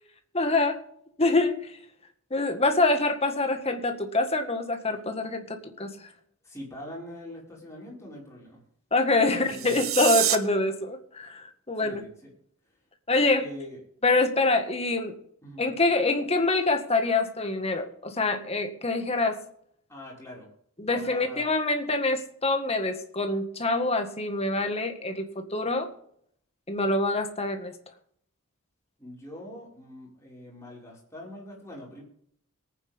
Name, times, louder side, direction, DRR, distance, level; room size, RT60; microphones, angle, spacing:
voice 1, 0.3-0.8 1.2-1.8 2.3-6.1 8.9-12.0 13.1-13.5 14.0-15.2 15.6-19.4 20.8-25.9 26.7-27.7, left 2 dB, 30° left, 6 dB, 1.8 m, -25 dB
voice 2, 6.4-8.6 9.2-9.7 11.8-12.3 13.4-13.8 15.4-15.7 19.9-20.5 20.9-21.5 29.0-32.0, left 1 dB, 15° left, -4 dB, 5.4 m, -43 dB
sound 1, 9.4-10.4, right 12 dB, 75° right, 1.1 m, -27 dB
22.5 x 9.4 x 3.6 m, 0.67 s
head